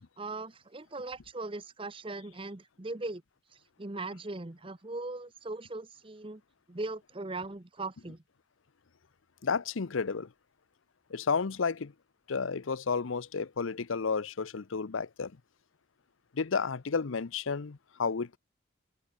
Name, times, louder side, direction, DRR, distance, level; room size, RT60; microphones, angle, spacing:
voice 1, 0.2-3.2 3.8-6.4 6.7-8.2, right 2 dB, 25° right, 0.9 m, -39 dB
voice 2, 9.4-10.3 11.1-11.9 12.3-15.3 16.3-18.4, left 5 dB, 85° left, 0.7 m, -31 dB
head